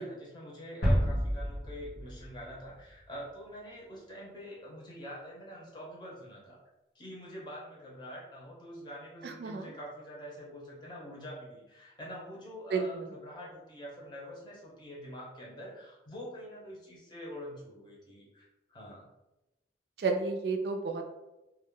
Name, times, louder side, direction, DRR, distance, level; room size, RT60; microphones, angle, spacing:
voice 1, 0.0-6.6 6.9-19.1, equal, 25° left, -4 dB, 0.7 m, -45 dB
sound 1, 0.8-3.3, equal, 70° left, 0.8 m, -30 dB
voice 2, 9.2-9.7 12.7-13.1 20.0-21.0, right 4 dB, 65° right, 4 dB, 0.3 m, -32 dB
2.2 x 2.0 x 3.6 m, 0.99 s
head